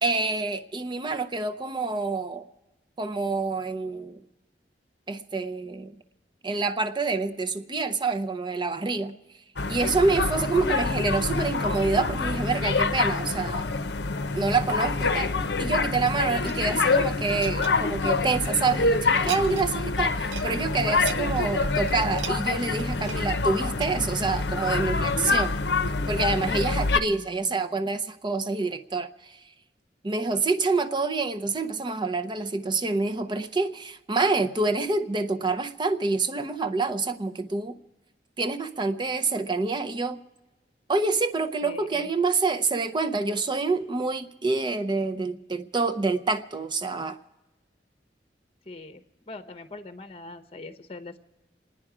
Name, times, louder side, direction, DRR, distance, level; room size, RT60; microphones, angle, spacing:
voice 1, 0.0-2.5 3.0-4.2 5.1-5.9 6.4-9.2 9.7-13.7 14.3-15.3 15.6-25.6 26.1-29.4 30.0-37.8 38.4-40.2 40.9-47.2, right 3 dB, 25° right, 9 dB, 0.6 m, -27 dB
sound 1, 9.6-27.0, left 3 dB, 70° left, 0.7 m, -26 dB
sound 2, 15.4-18.6 19.0-19.7 20.0-20.5 20.8-25.1 25.6-25.8, right 6 dB, 80° right, 0.5 m, -40 dB
voice 2, 41.6-42.1 48.6-51.2, left 2 dB, 35° left, 10 dB, 0.8 m, -42 dB
28.0 x 9.8 x 4.9 m, 1.1 s
head